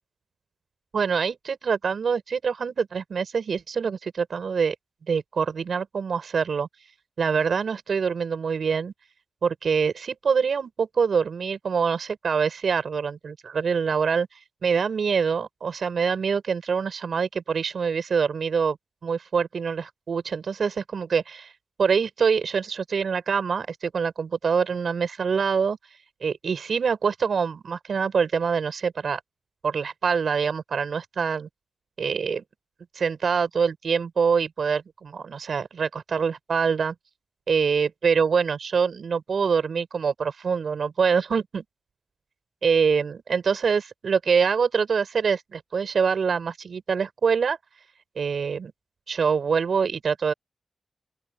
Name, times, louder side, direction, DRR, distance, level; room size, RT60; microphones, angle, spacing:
voice 1, 0.9-4.8 5.1-6.7 7.2-8.9 9.4-14.3 14.6-18.8 19.0-21.5 21.8-25.8 26.2-29.2 29.6-31.5 32.0-32.4 33.0-36.9 37.5-41.6 42.6-47.6 48.2-48.7 49.1-50.3, right 6 dB, 75° right, 7.2 m, -25 dB
open air
wide cardioid pair, 100°, 0 cm